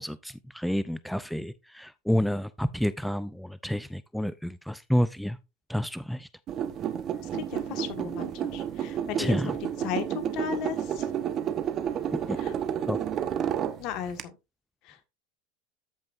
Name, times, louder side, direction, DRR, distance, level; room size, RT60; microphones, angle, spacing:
voice 1, 0.0-5.4 5.7-6.3 9.2-9.6 12.3-12.4 12.9-13.0, equal, ahead, 0.4 m, -29 dB
sound 1, 6.5-14.2, right 9 dB, 40° right, 1.0 m, -31 dB
voice 2, 7.3-9.3 9.8-11.1 12.4-12.5 13.8-14.3 14.8-15.1, left 9 dB, 55° left, 1.6 m, -35 dB
13.5 x 5.4 x 2.6 m
supercardioid pair, 115°, 0 cm